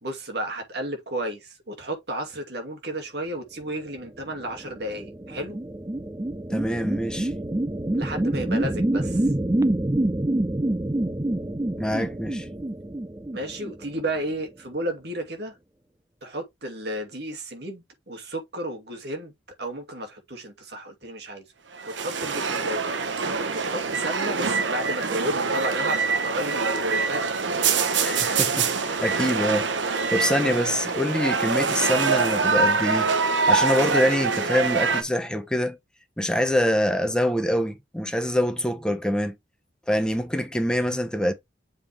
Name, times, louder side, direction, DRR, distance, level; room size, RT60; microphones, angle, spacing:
voice 1, 0.0-5.6 7.9-9.3 13.3-15.5 16.2-19.3 19.6-21.4 22.0-23.0 23.5-27.3, right 1 dB, 60° right, 2.4 m, -32 dB
sound 1, 4.4-14.2, right 1 dB, 15° right, 0.5 m, -27 dB
voice 2, 6.5-7.3 11.8-12.5 28.0-33.1 33.5-35.8 36.2-39.3 39.9-41.3, equal, 5° left, 1.0 m, -25 dB
sound 2, 21.7-35.0, right 4 dB, 85° right, 1.1 m, -24 dB
7.3 x 4.7 x 3.4 m
head